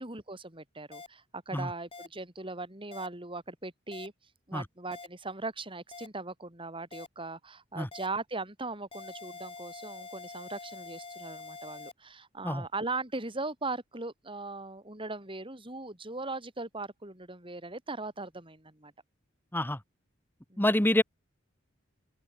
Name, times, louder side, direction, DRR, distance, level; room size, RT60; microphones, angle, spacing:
voice 1, 0.0-4.1 4.5-18.9 20.5-20.7, right 3 dB, 25° right, 5.1 m, -39 dB
sound 1, 0.9-1.1 1.9-2.1 2.9-3.1 3.9-4.1 4.9-5.1 5.9-6.1 6.9-7.1 7.9-8.1 8.9-11.9, left 3 dB, 30° left, 7.6 m, -45 dB
voice 2, 20.6-21.0, left 1 dB, 10° left, 2.0 m, -26 dB
open air
head